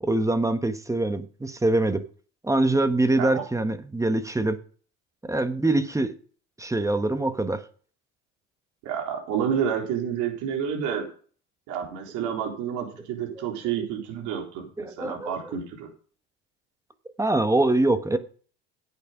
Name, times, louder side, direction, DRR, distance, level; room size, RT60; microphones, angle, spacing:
voice 1, 0.0-2.0 2.4-4.6 5.2-6.1 6.6-7.6 13.3-13.4 14.8-15.6 17.2-18.2, right 2 dB, 10° right, 10 dB, 1.3 m, -24 dB
voice 2, 8.8-11.0 11.7-15.9, right 8 dB, 65° right, 1 dB, 3.9 m, -29 dB
10.5 x 8.7 x 5.1 m, 0.42 s
supercardioid pair, 85°, 32 cm